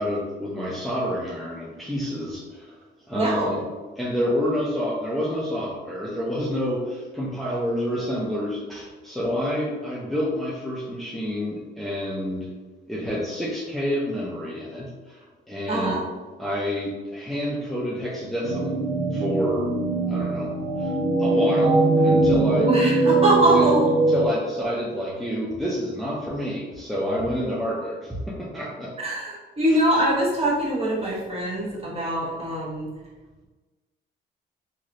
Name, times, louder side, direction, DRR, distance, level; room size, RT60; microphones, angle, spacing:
voice 1, 0.0-2.8 3.1-3.6 4.0-12.5 12.9-16.0 16.4-18.8 19.1-19.7 20.1-20.5 20.8-22.7 23.5-23.7 24.1-28.9 29.7-29.8, equal, ahead, -6 dB, 0.6 m, -28 dB
voice 2, 3.1-3.6 15.7-16.0 22.5-23.9 29.0-32.9, right 1 dB, 30° right, -5 dB, 1.2 m, -23 dB
sound 1, 18.4-24.3, right 2 dB, 75° right, 0.7 m, -21 dB
3.0 x 2.9 x 2.6 m, 1.2 s
cardioid pair, 90°, 20 cm